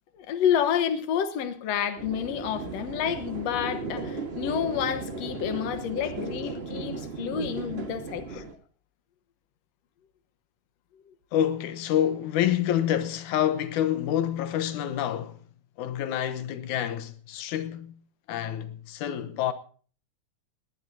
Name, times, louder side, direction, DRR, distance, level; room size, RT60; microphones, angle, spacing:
voice 1, 0.1-8.5, left 9 dB, 65° left, 2.2 m, -29 dB
sound 1, 2.0-8.5, right 3 dB, 35° right, 1.1 m, -36 dB
voice 2, 11.3-15.4 15.8-17.9 18.3-19.5, left 11 dB, 90° left, 2.4 m, -27 dB
19.0 x 18.0 x 2.7 m
omnidirectional pair, 3.4 m